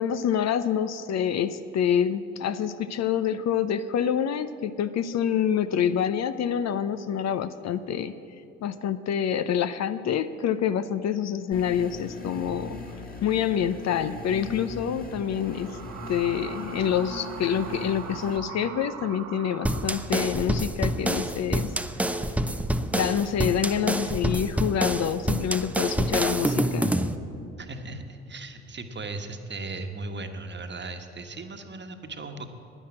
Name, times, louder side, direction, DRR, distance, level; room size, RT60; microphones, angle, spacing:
voice 1, 0.0-8.1 8.6-12.8 13.2-15.8 16.1-21.7 22.9-26.9, left 8 dB, 50° left, 12 dB, 0.6 m, -27 dB
sound 1, 11.5-18.4, left 2 dB, 25° left, 2.0 m, -40 dB
sound 2, 15.3-20.4, right 8 dB, 70° right, 1.3 m, -41 dB
sound 3, 19.6-27.2, right 1 dB, 5° right, 0.7 m, -27 dB
voice 2, 27.6-32.5, right 3 dB, 30° right, 6 dB, 1.3 m, -37 dB
10.0 x 9.9 x 8.7 m, 2.6 s
hypercardioid pair, 55°, 35 cm